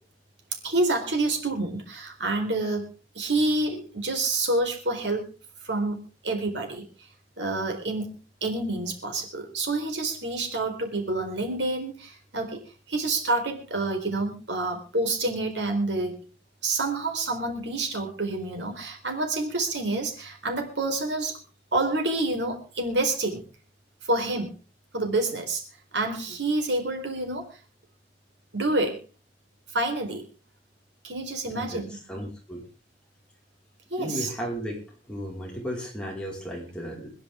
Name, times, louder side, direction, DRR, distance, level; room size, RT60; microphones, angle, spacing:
voice 1, 0.6-5.3 5.6-6.8 7.4-12.6 12.9-16.2 16.6-21.4 21.7-23.4 24.0-24.6 24.9-25.6 25.9-27.5 28.5-29.0 29.7-30.2 31.0-32.0 33.9-34.3, right 2 dB, 80° right, 3 dB, 4.2 m, -28 dB
voice 2, 31.5-31.8 32.1-32.6 34.0-34.8 35.1-37.1, equal, 5° left, -2 dB, 4.9 m, -34 dB
26.0 x 10.5 x 3.7 m, 0.34 s
head